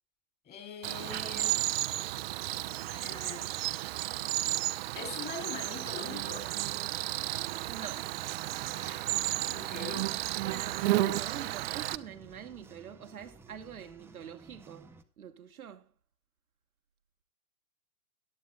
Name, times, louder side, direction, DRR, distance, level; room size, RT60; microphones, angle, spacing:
voice 1, 0.4-1.6 2.9-3.4 3.9-4.0 4.9-6.5 8.7-9.0 9.5-10.1, left 5 dB, 20° left, 4.1 m, -43 dB
Cricket, 0.8-12.0, right 16 dB, 45° right, 0.8 m, -33 dB
sound 1, 7.5-15.0, right 3 dB, 5° right, 0.9 m, -55 dB
voice 2, 7.7-8.1 10.4-14.9 15.2-15.9, right 8 dB, 80° right, 1.4 m, -45 dB
17.5 x 11.0 x 2.3 m
hypercardioid pair, 120°, 43 cm